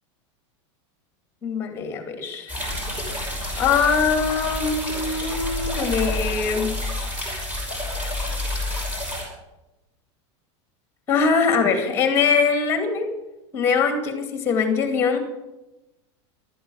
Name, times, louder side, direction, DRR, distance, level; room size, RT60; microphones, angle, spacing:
voice 1, 1.4-2.6 3.6-6.7 11.1-13.1 13.5-15.2, left 5 dB, 15° left, 6 dB, 2.3 m, -22 dB
sound 1, 2.5-9.2, left 1 dB, 10° right, 5.6 m, -29 dB
14.5 x 12.5 x 7.0 m, 0.99 s
supercardioid pair, 180°, 16 cm